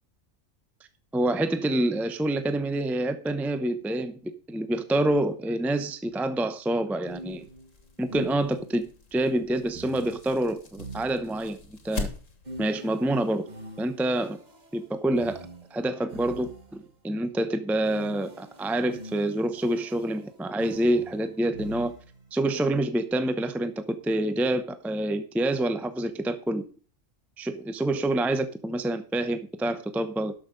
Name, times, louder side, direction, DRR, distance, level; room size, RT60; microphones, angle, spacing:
voice 1, 1.1-7.4 8.0-11.6 11.8-12.1 12.6-13.4 13.8-14.4 14.7-21.9 22.3-26.6 27.4-30.3, right 1 dB, ahead, 10 dB, 0.6 m, -27 dB
sound 1, 6.0-6.2 7.1-8.9 9.7-11.7 12.4-17.0 17.8-22.3, right 2 dB, 35° right, 1.7 m, -46 dB
sound 2, 7.1-12.7, left 4 dB, 70° left, 2.1 m, -41 dB
12.0 x 6.5 x 5.2 m, 0.40 s
omnidirectional pair, 1.4 m